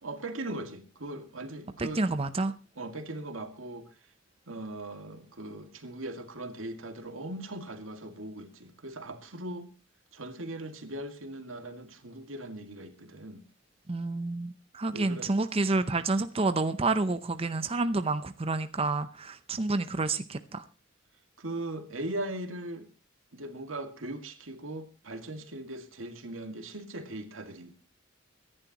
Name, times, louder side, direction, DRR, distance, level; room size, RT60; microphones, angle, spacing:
voice 1, 0.0-2.0 2.8-3.9 4.5-9.7 10.1-13.4 14.9-15.3 21.4-22.9 23.3-27.7, right 1 dB, 90° right, 2.2 m, -39 dB
voice 2, 1.8-2.5 13.9-20.6, right 3 dB, 30° right, 0.7 m, -29 dB
24.5 x 11.0 x 3.0 m
head